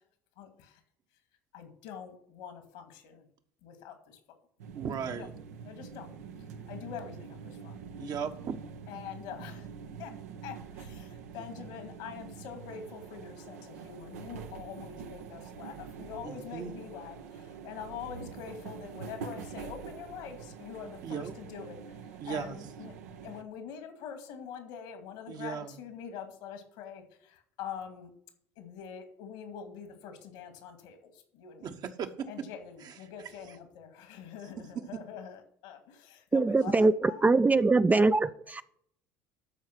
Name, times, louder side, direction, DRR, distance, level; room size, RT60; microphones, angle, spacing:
voice 1, 0.4-0.8 1.5-3.3 3.6-4.2 5.1-5.3 5.6-7.8 8.9-9.7 10.0-10.1 10.4-21.8 22.3-28.1 28.6-31.7 32.3-37.4, left 7 dB, 75° left, 2.3 m, -44 dB
sound 1, 4.6-23.4, right 6 dB, 85° right, 0.9 m, -45 dB
voice 2, 4.7-5.3 8.0-8.6 16.2-16.8 21.0-21.3 22.2-22.6 25.3-25.8 31.6-32.3 32.8-32.9, right 7 dB, 50° right, 1.2 m, -37 dB
voice 3, 36.3-38.6, right 3 dB, 20° right, 0.5 m, -23 dB
12.5 x 4.8 x 6.0 m
hypercardioid pair, 65°, 8 cm